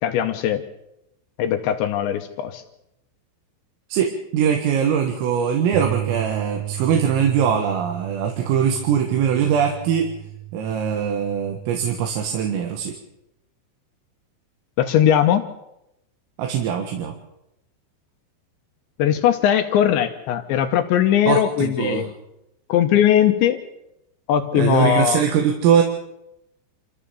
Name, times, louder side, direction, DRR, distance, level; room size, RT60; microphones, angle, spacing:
voice 1, 0.0-0.6 1.4-2.6 14.8-15.4 19.0-22.1 22.7-23.6 24.3-25.2, left 10 dB, 75° left, 7 dB, 3.0 m, -19 dB
voice 2, 3.9-10.1 10.5-13.0 16.4-17.2 21.3-22.1 24.5-25.8, right 8 dB, 85° right, 3 dB, 4.2 m, -21 dB
sound 1, 5.7-12.0, right 14 dB, 45° right, 2.3 m, -33 dB
26.5 x 14.5 x 7.0 m, 0.85 s
omnidirectional pair, 5.9 m